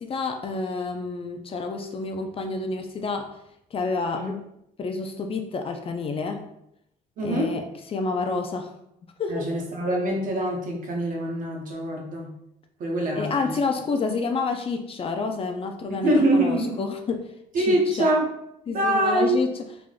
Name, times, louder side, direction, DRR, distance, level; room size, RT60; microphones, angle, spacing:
voice 1, 0.0-3.3 3.7-4.3 4.8-6.4 7.2-7.6 7.9-8.7 9.2-9.5 13.2-17.3 17.6-18.1 18.7-19.5, left 4 dB, 35° left, 5 dB, 0.4 m, -29 dB
voice 2, 7.2-7.6 9.3-12.3 12.8-13.6 15.9-16.8 17.5-18.3 18.7-19.4, right 1 dB, 55° right, 0 dB, 1.0 m, -24 dB
3.7 x 3.5 x 2.4 m, 0.77 s
cardioid pair, 110°, 17 cm